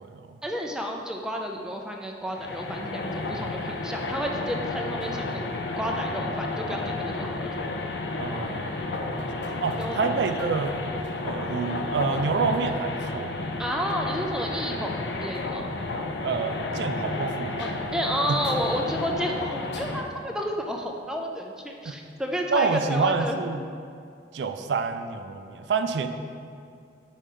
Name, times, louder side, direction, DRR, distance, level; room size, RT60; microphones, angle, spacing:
voice 1, 0.4-5.4 5.8-7.5 9.8-10.0 13.6-15.7 17.6-23.4, equal, 5° right, 1 dB, 0.4 m, -31 dB
sound 1, 2.3-20.0, left 2 dB, 75° left, 0.5 m, -32 dB
voice 2, 8.2-9.3 9.6-10.7 11.2-13.5 16.2-17.6 21.9-22.0 22.5-23.6 24.3-26.1, right 4 dB, 75° right, 8 dB, 0.4 m, -28 dB
4.9 x 4.3 x 5.4 m, 2.3 s
head